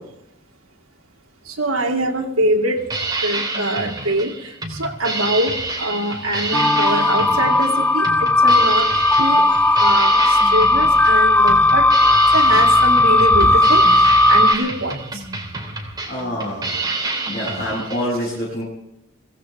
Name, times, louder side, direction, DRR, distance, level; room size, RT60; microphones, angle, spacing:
voice 1, 1.4-2.8 3.2-8.9 9.2-9.4 9.8-11.9 12.3-15.2, right 1 dB, 75° right, -1 dB, 2.5 m, -23 dB
sound 1, 2.8-18.0, right 3 dB, 20° right, 2.8 m, -28 dB
sound 2, 6.5-14.5, left 2 dB, 5° left, 0.8 m, -15 dB
voice 2, 16.1-16.7 17.3-18.6, equal, 40° left, -6 dB, 7.6 m, -26 dB
23.5 x 16.5 x 3.6 m, 0.81 s
head